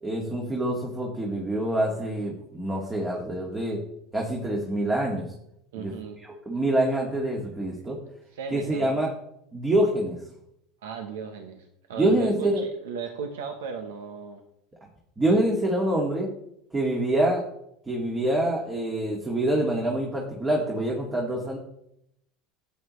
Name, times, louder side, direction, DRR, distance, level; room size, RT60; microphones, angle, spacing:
voice 1, 0.0-3.8 4.1-5.3 5.8-5.9 6.5-8.0 8.5-9.1 9.5-10.2 11.9-12.6 15.2-16.3 16.7-17.4 17.9-21.6, right 1 dB, 20° right, -1 dB, 2.0 m, -26 dB
voice 2, 5.7-6.2 8.3-9.1 10.8-14.4, right 6 dB, 85° right, 5 dB, 1.0 m, -36 dB
11.0 x 8.4 x 3.2 m, 0.78 s
supercardioid pair, 100°, 0 cm